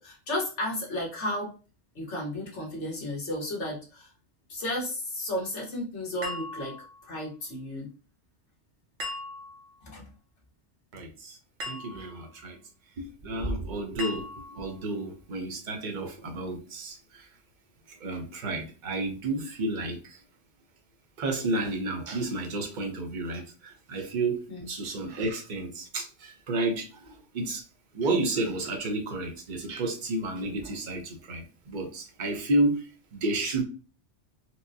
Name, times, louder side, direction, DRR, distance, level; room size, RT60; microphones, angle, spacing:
voice 1, 0.0-1.5 1.9-4.1 4.5-6.7 7.0-7.9 9.8-10.0 24.5-24.7, left 1 dB, 70° left, -3 dB, 1.6 m, -33 dB
sound 1, 6.2-7.2 9.0-9.8 11.6-12.3 14.0-14.8, left 1 dB, 75° right, 1.2 m, -38 dB
voice 2, 10.9-11.4 11.7-12.6 13.0-17.3 18.0-20.2 21.2-27.6 27.9-33.6, right 2 dB, 45° right, 2 dB, 0.8 m, -31 dB
4.4 x 2.1 x 2.7 m, 0.35 s
omnidirectional pair, 1.3 m